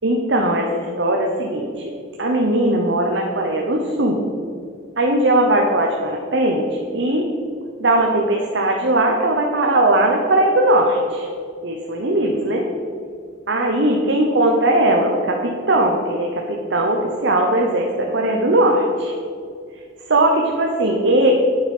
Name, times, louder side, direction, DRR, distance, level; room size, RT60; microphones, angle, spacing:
voice 1, 0.0-1.9 2.2-4.2 5.0-6.7 6.9-7.3 7.8-11.3 11.6-12.7 13.5-19.1 20.1-21.3, right 1 dB, 70° right, 1 dB, 1.0 m, -19 dB
9.2 x 7.4 x 5.4 m, 2.3 s
head